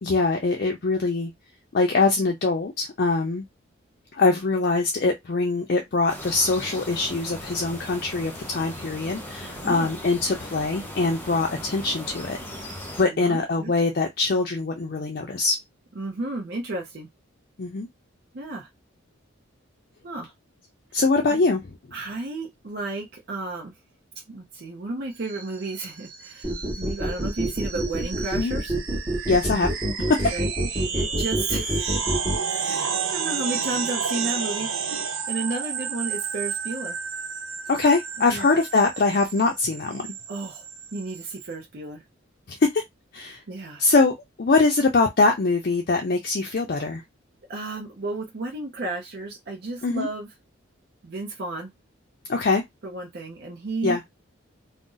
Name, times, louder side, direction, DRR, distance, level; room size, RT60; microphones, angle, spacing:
voice 1, 0.0-1.3 1.7-3.4 4.1-12.4 13.0-15.6 17.6-17.9 20.9-21.7 28.4-28.6 29.3-29.7 30.1-30.3 37.7-40.1 42.5-42.8 43.1-43.4 43.8-47.0 49.8-50.1 52.3-52.6 53.8-54.0, left 3 dB, 45° left, 0.4 m, -23 dB
sound 1, 6.1-13.0, left 1 dB, 10° left, 0.8 m, -38 dB
voice 2, 9.4-9.9 13.0-13.7 16.0-17.1 18.3-18.7 20.0-20.3 21.3-21.4 21.9-23.7 24.3-26.5 26.7-28.7 30.3-30.5 30.9-31.9 32.4-34.7 35.3-37.0 38.2-38.5 40.3-40.6 40.9-42.0 43.5-43.8 47.5-50.3 51.0-51.7 52.8-54.0, right 2 dB, 50° right, 0.5 m, -33 dB
sound 2, 25.2-41.5, right 6 dB, 85° right, 0.7 m, -32 dB
sound 3, 26.4-32.4, equal, 20° right, 0.9 m, -26 dB
2.6 x 2.0 x 3.7 m
head